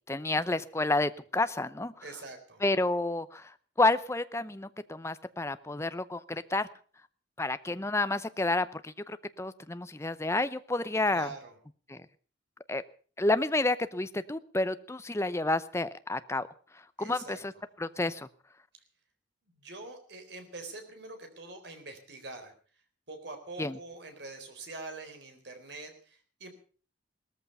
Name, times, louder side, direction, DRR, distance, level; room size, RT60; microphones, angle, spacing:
voice 1, 0.1-1.9 2.6-3.5 3.8-6.7 7.4-11.3 11.9-12.0 12.7-12.8 13.2-16.5 17.0-17.5 17.8-18.3 23.6-23.8, left 2 dB, 15° left, 13 dB, 0.7 m, -30 dB
voice 2, 2.0-2.6 11.1-11.6 17.0-17.4 19.5-22.5 23.1-26.5, right 3 dB, 65° right, 6 dB, 4.0 m, -44 dB
18.0 x 14.0 x 5.5 m, 0.41 s
head